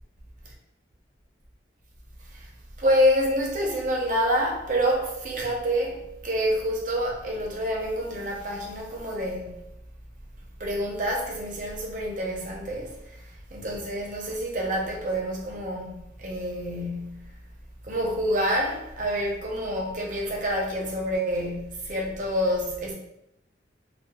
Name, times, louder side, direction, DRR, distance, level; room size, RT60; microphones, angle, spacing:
voice 1, 2.8-9.6 10.6-17.3 17.8-22.9, equal, 45° right, 0.5 m, -27 dB
2.8 x 2.2 x 2.2 m
head